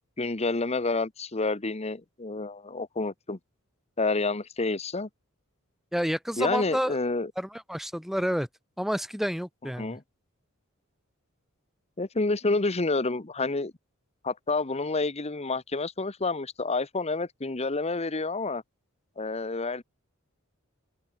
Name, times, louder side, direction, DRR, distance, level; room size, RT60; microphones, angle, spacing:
voice 1, 0.2-3.4 4.0-5.1 6.4-7.3 9.8-10.0 12.0-13.7 14.2-18.6 19.2-19.8, left 3 dB, 30° left, 1.1 m, -29 dB
voice 2, 5.9-7.0 7.4-8.5 8.8-10.0, equal, ahead, 2.3 m, -29 dB
open air
head